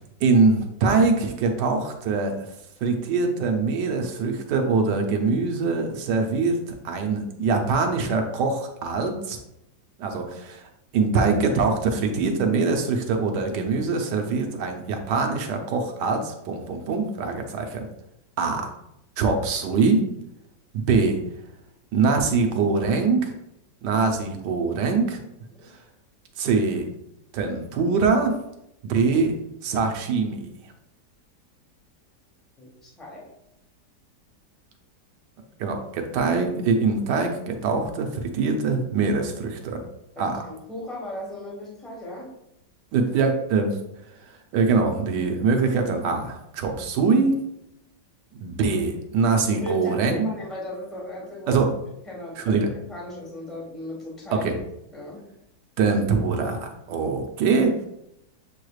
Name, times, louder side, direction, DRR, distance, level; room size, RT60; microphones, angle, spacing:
voice 1, 0.2-2.3 2.8-6.6 6.8-9.4 10.0-10.6 10.9-17.9 18.4-18.7 19.2-20.1 20.7-21.2 21.9-23.3 23.8-25.2 26.4-26.9 27.3-28.3 28.8-29.3 29.6-30.5 35.6-39.8 40.2-40.4 42.9-43.8 44.5-47.4 48.3-50.3 51.5-51.7 52.4-52.7 54.3-54.5 55.8-57.7, right 4 dB, 85° right, 4 dB, 1.3 m, -23 dB
voice 2, 32.6-33.3 40.1-42.3 49.5-51.6 52.0-54.6 54.9-55.2, left 1 dB, ahead, -4 dB, 1.0 m, -37 dB
7.3 x 3.1 x 2.3 m, 0.81 s
omnidirectional pair, 1.8 m